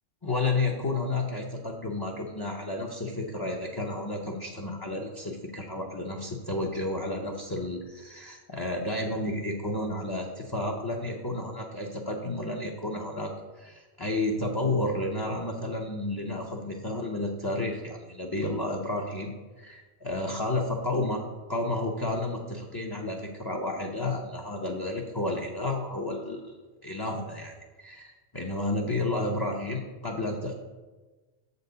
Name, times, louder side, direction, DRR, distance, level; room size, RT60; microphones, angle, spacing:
voice 1, 0.2-21.2 21.5-26.4 26.8-30.5, left 2 dB, 25° left, 1 dB, 0.6 m, -31 dB
7.3 x 4.0 x 6.7 m, 1.3 s
omnidirectional pair, 1.1 m